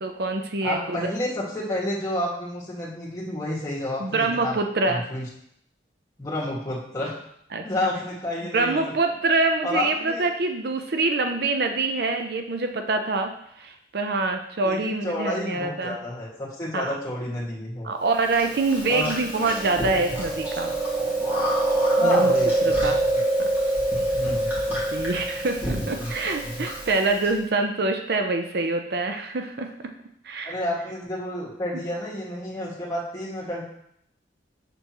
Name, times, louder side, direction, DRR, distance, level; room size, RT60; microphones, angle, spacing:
voice 1, 0.0-1.1 4.0-5.0 7.5-7.9 8.5-13.3 13.6-16.0 16.7-17.0 17.8-20.7 22.0-22.3 22.6-23.0 23.4-23.5 24.9-29.7 30.2-30.5, right 3 dB, 55° right, 5 dB, 0.6 m, -25 dB
voice 2, 0.6-4.6 4.9-5.2 6.2-7.2 7.6-8.8 9.6-10.3 14.6-17.9 18.9-19.1 21.9-23.0 24.2-24.5 26.0-26.1 26.4-26.5 30.4-33.6, left 1 dB, 20° left, -6 dB, 1.9 m, -30 dB
Chewing mastication, 18.3-27.3, right 2 dB, 10° right, 1.9 m, -25 dB
6.9 x 6.7 x 3.0 m, 0.72 s
head